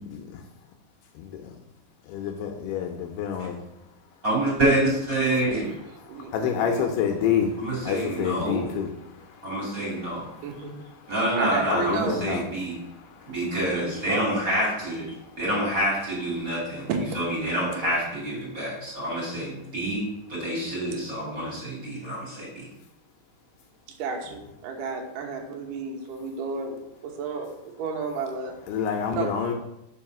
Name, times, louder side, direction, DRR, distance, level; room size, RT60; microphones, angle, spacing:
voice 1, 2.0-3.6 6.0-10.7 11.0-11.1 11.7-12.4 12.7-13.6 15.1-15.4 28.7-29.5, left 8 dB, 80° left, 3 dB, 2.4 m, -29 dB
voice 2, 4.2-5.7 7.6-8.6 9.4-10.3 11.1-12.7 13.3-16.9 17.1-22.6, right 1 dB, 25° right, -5 dB, 2.2 m, -27 dB
voice 3, 5.3-5.7 6.1-6.9 10.4-10.9 11.4-12.3 14.1-14.3 16.9-17.2 17.8-18.0 24.0-28.5 29.1-29.3, right 5 dB, 75° right, 2 dB, 2.0 m, -32 dB
5.4 x 5.3 x 5.9 m, 0.88 s
omnidirectional pair, 5.2 m